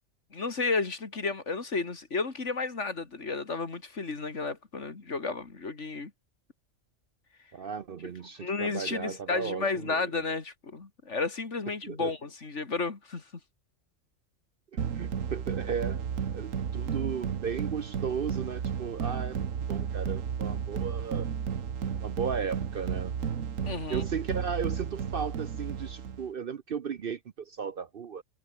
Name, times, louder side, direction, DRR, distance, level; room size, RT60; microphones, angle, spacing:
voice 1, 0.3-6.1 8.4-13.2 23.7-24.1, left 4 dB, 60° left, 2.8 m, -32 dB
voice 2, 7.5-10.1 11.8-12.1 14.7-16.0 16.3-21.2 22.0-23.2 23.9-28.2, right 6 dB, 50° right, 0.8 m, -35 dB
sound 1, 14.8-26.3, right 7 dB, 75° right, 1.7 m, -33 dB
omnidirectional pair, 1.4 m